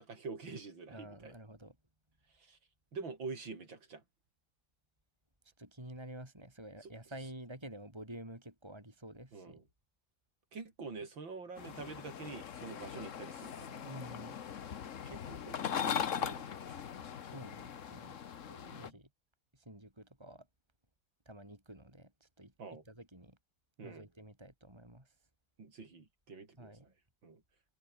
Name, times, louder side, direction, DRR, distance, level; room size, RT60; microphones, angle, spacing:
voice 1, 0.0-1.3 2.4-2.6 2.9-4.0 6.8-6.9 9.3-9.6 10.5-13.9 15.1-16.8 18.6-19.0 22.6-22.8 23.8-24.1 25.6-26.7 27.2-27.4, right 4 dB, 80° right, 4.7 m, -46 dB
voice 2, 0.9-1.7 5.6-9.6 13.8-14.4 17.2-18.2 18.5-19.1 19.5-20.5 21.2-23.4 23.8-25.1 26.6-26.9, right 1 dB, 15° right, 5.0 m, -50 dB
sound 1, 11.6-18.9, left 8 dB, 45° left, 1.3 m, -40 dB
omnidirectional pair, 2.1 m